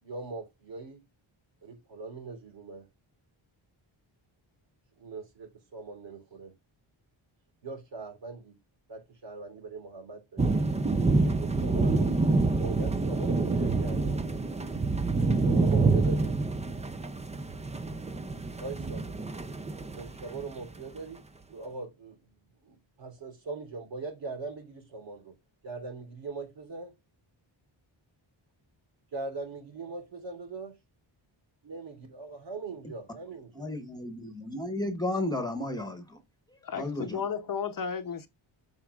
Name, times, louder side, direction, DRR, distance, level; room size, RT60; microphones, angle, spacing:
voice 1, 0.0-1.0 1.6-2.9 5.0-6.5 7.6-8.5 8.9-10.5 11.2-14.5 15.3-16.4 18.6-19.2 19.9-21.2 21.5-22.2 22.6-25.3 25.6-26.9 29.1-30.8 31.6-33.7, right 3 dB, 65° right, 3.4 m, -41 dB
sound 1, 10.4-20.5, right 3 dB, 15° right, 0.4 m, -27 dB
voice 2, 33.6-36.2 36.8-37.2, left 1 dB, 10° left, 1.2 m, -33 dB
voice 3, 36.6-38.3, left 6 dB, 45° left, 0.8 m, -33 dB
13.0 x 4.6 x 2.4 m
wide cardioid pair, 165°, 48 cm